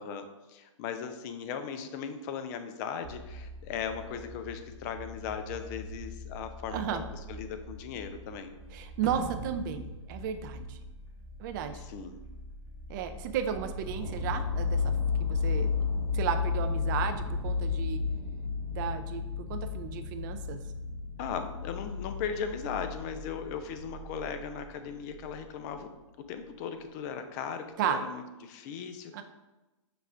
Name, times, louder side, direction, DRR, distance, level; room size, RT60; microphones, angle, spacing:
voice 1, 0.0-7.0 7.3-8.6 9.8-9.9 11.8-12.2 21.2-25.9 26.2-29.2, left 7 dB, 35° left, 8 dB, 0.4 m, -38 dB
sound 1, 3.0-18.3, left 1 dB, 55° right, 1.0 m, -45 dB
voice 2, 6.7-7.0 8.7-10.8 11.4-11.8 12.9-14.8 15.2-18.0 18.7-19.2 19.5-20.6 27.8-28.0 29.1-29.2, right 8 dB, 40° right, 9 dB, 0.4 m, -34 dB
sound 2, 9.0-11.5, right 1 dB, 5° right, 0.8 m, -43 dB
sound 3, 13.4-25.8 26.4-26.5, left 5 dB, 80° left, 1.2 m, -33 dB
5.9 x 2.4 x 3.3 m, 1.1 s
hypercardioid pair, 120°, 16 cm